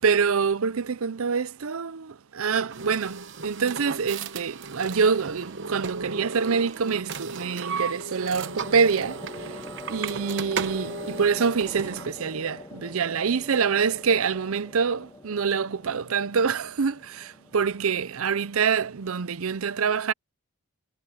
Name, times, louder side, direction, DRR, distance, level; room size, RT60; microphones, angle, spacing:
voice 1, 0.0-9.6 9.9-20.1, right 5 dB, 70° right, 0.6 m, -26 dB
sound 1, 2.7-12.1, right 5 dB, 55° right, 0.9 m, -35 dB
sound 2, 4.7-5.2 7.8-19.2, left 2 dB, 15° left, 0.9 m, -45 dB
head